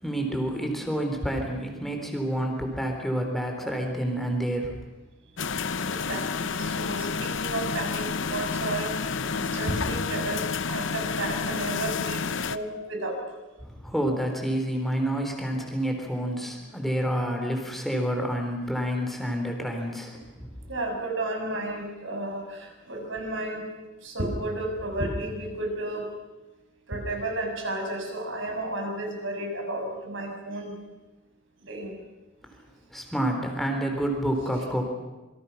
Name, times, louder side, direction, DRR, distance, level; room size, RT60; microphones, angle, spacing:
voice 1, 0.0-4.7 13.6-20.5 32.9-34.8, equal, ahead, 2 dB, 3.8 m, -28 dB
sound 1, 5.4-12.6, left 5 dB, 60° left, 0.8 m, -30 dB
voice 2, 5.9-13.2 20.7-23.7 24.0-26.1 26.9-30.7 31.6-31.9, right 1 dB, 65° right, 2 dB, 6.6 m, -32 dB
27.0 x 24.0 x 5.9 m, 1.1 s
head